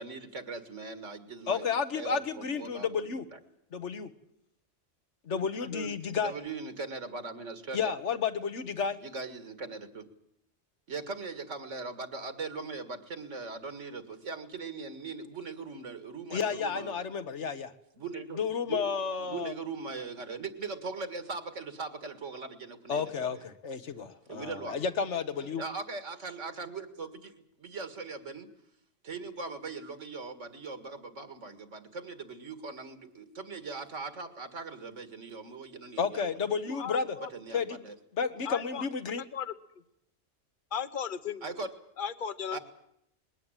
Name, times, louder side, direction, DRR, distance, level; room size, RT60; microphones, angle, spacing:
voice 1, 0.0-3.4 6.2-8.0 9.0-10.0 10.9-17.0 18.0-18.8 19.2-23.4 24.3-24.8 25.4-28.5 29.0-36.4 37.2-38.0 41.4-41.7 42.5-42.6, right 4 dB, 75° right, 10 dB, 2.2 m, -40 dB
voice 2, 1.5-3.2 3.7-4.1 5.3-6.3 7.7-9.0 16.3-17.7 18.4-19.5 22.9-25.6 36.0-37.2 37.5-37.8 38.1-39.2, left 6 dB, 70° left, 10 dB, 1.5 m, -31 dB
voice 3, 36.7-37.3 38.4-38.9 39.2-39.5 40.7-41.5 42.0-42.6, left 7 dB, 45° left, 13 dB, 1.1 m, -36 dB
21.0 x 17.0 x 9.0 m, 0.79 s
omnidirectional pair, 1.3 m